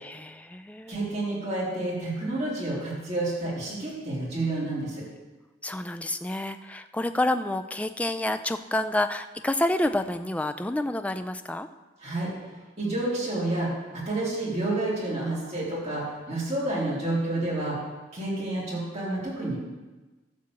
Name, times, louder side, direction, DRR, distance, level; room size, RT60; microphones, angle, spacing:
voice 1, 0.0-0.9 5.6-11.7, left 1 dB, 5° left, 10 dB, 0.3 m, -28 dB
voice 2, 0.9-5.0 12.0-12.3 12.8-13.7 14.1-17.8 18.1-19.6, right 2 dB, 35° right, -8 dB, 3.5 m, -29 dB
12.5 x 4.2 x 7.6 m, 1.2 s
head